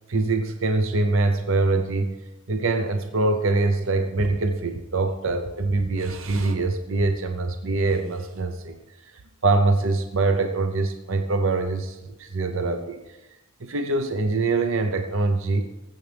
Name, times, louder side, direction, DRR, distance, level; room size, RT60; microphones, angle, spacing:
voice 1, 0.1-2.2 2.5-8.8 9.4-13.0 13.6-15.7, right 3 dB, 60° right, 6 dB, 0.7 m, -24 dB
19.5 x 8.0 x 3.5 m, 1.0 s
head